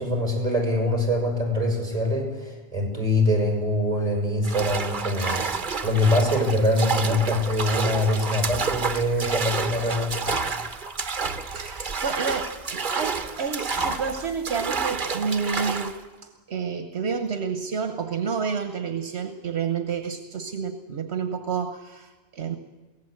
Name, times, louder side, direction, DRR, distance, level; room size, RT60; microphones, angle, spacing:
voice 1, 0.0-10.2, left 1 dB, 30° right, 1 dB, 5.8 m, -24 dB
sound 1, 4.4-16.0, right 4 dB, 50° right, 1.3 m, -29 dB
voice 2, 11.5-22.6, right 6 dB, 75° right, 7 dB, 1.3 m, -30 dB
23.5 x 17.0 x 7.9 m, 1.3 s
omnidirectional pair, 1.1 m